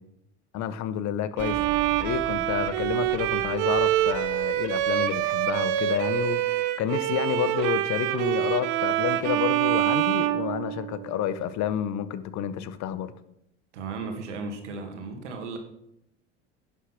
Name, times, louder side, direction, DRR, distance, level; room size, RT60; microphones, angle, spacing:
voice 1, 0.5-13.1, left 10 dB, 55° left, 14 dB, 1.1 m, -30 dB
Explosion, 1.4-6.2, right 1 dB, 5° right, 5.2 m, -44 dB
Bowed string instrument, 1.4-11.2, right 14 dB, 60° right, 0.9 m, -26 dB
voice 2, 13.7-15.6, right 4 dB, 80° right, 4 dB, 2.2 m, -35 dB
11.0 x 7.1 x 5.9 m, 0.79 s
hypercardioid pair, 70°, 35 cm